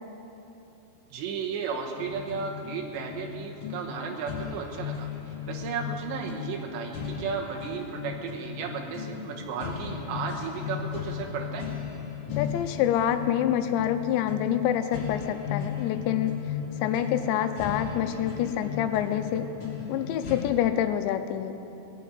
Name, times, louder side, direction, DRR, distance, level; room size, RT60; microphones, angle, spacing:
voice 1, 1.1-11.7, right 5 dB, 85° right, 2 dB, 3.4 m, -34 dB
sound 1, 2.0-20.4, left 7 dB, 40° left, 2.8 m, -36 dB
voice 2, 12.4-16.3 16.8-19.5 19.9-21.5, left 10 dB, 90° left, 8 dB, 3.0 m, -27 dB
18.5 x 7.0 x 9.0 m, 2.9 s
omnidirectional pair, 5.0 m